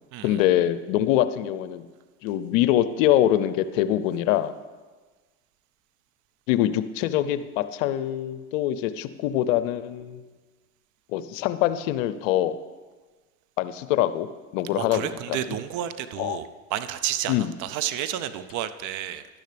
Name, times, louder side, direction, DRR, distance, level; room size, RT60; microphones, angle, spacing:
voice 1, 0.2-1.8 2.2-4.5 6.5-10.3 11.1-12.6 13.6-14.3 14.5-15.4 16.2-16.4 17.3-17.5, left 12 dB, 65° left, 13 dB, 0.7 m, -24 dB
voice 2, 14.8-19.3, right 11 dB, 45° right, 12 dB, 0.6 m, -31 dB
12.0 x 10.0 x 3.4 m, 1.3 s
hypercardioid pair, 90°, 42 cm